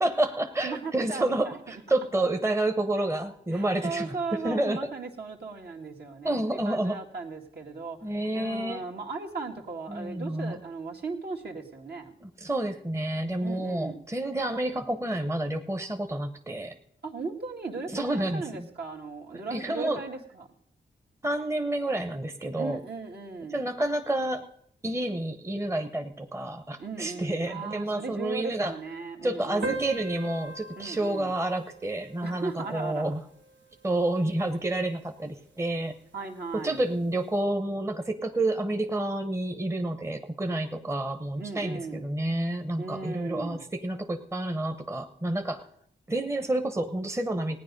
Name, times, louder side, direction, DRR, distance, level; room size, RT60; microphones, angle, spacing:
voice 1, 0.0-4.9 6.2-7.0 8.0-8.8 9.9-10.5 12.2-16.7 17.9-18.7 19.5-20.0 21.2-22.8 23.5-24.5 24.8-28.7 29.2-33.2 33.8-35.9 36.5-45.7 46.1-47.6, right 1 dB, 15° right, 6 dB, 1.0 m, -29 dB
voice 2, 0.6-1.4 3.5-12.1 13.4-14.0 17.0-20.5 22.5-23.6 26.8-29.8 30.8-31.3 32.2-33.1 36.1-36.8 41.4-42.0 42.8-43.6, right 4 dB, 60° right, 0 dB, 2.1 m, -37 dB
sound 1, 29.6-34.6, right 3 dB, 80° right, 1.4 m, -41 dB
16.0 x 9.5 x 5.3 m, 0.69 s
cardioid pair, 55°, 19 cm